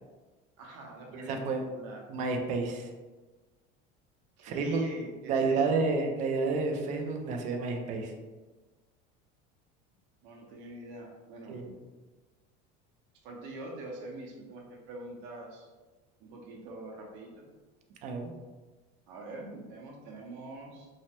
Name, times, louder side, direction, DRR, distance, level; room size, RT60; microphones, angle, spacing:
voice 1, 0.6-1.5 1.7-2.0 4.4-5.9 10.2-11.6 13.2-15.7 16.2-17.3 19.1-20.9, right 2 dB, 60° right, 0 dB, 0.7 m, -44 dB
voice 2, 1.3-1.6 2.1-2.9 4.4-4.8 5.3-8.1 11.5-11.7 18.0-18.3, right 4 dB, 35° right, 3 dB, 0.4 m, -30 dB
3.2 x 2.0 x 2.8 m, 1.3 s
cardioid pair, 160°, 21 cm